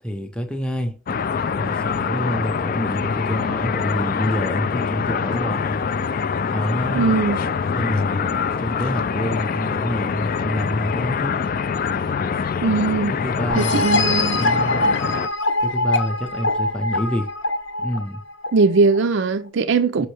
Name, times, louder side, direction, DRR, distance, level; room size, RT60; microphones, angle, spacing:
voice 1, 0.0-1.0 1.5-5.8 6.5-7.2 7.7-11.3 13.1-14.9 15.6-17.3 17.8-18.2 20.0-20.1, equal, 5° left, 0.6 m, -27 dB
sound 1, 1.1-15.3, left 6 dB, 40° left, 0.3 m, -24 dB
voice 2, 6.9-7.4 12.6-13.2 13.6-14.4 14.8-15.0 18.5-20.1, right 4 dB, 55° right, 0.4 m, -20 dB
sound 2, 13.5-19.0, left 2 dB, 60° left, 0.7 m, -23 dB
6.1 x 5.5 x 3.3 m
head